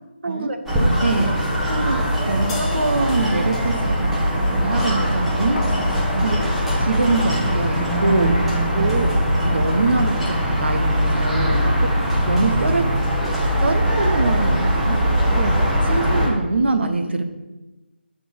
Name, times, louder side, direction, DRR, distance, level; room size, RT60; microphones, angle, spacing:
voice 1, 0.2-5.7 6.2-8.4 9.4-11.8 12.3-12.9 13.6-15.0 15.9-17.2, right 3 dB, 70° right, 7 dB, 1.0 m, -24 dB
sound 1, 0.7-16.3, equal, 5° right, 0.9 m, -21 dB
sound 2, 2.5-8.4, left 1 dB, 20° left, 1.2 m, -41 dB
sound 3, 5.6-8.1 8.5-8.6, left 3 dB, 75° left, 0.7 m, -37 dB
voice 2, 8.7-9.2 11.9-12.1 15.3-15.6, right 5 dB, 30° right, 6 dB, 0.3 m, -28 dB
8.2 x 3.9 x 5.5 m, 1.1 s
figure-of-eight pair, 160°, 6 cm